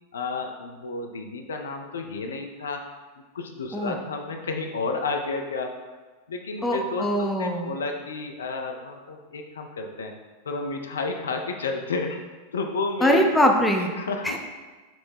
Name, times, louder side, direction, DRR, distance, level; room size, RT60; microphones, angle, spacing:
voice 1, 0.1-2.8 3.3-5.7 6.3-10.1 10.4-12.2 12.5-13.3 14.0-14.4, left 3 dB, 65° left, 3 dB, 0.4 m, -31 dB
voice 2, 6.6-7.7 13.0-13.9 14.2-14.4, equal, 5° left, 1 dB, 0.5 m, -22 dB
5.2 x 2.1 x 4.5 m, 1.3 s
figure-of-eight pair, 90°, 0 cm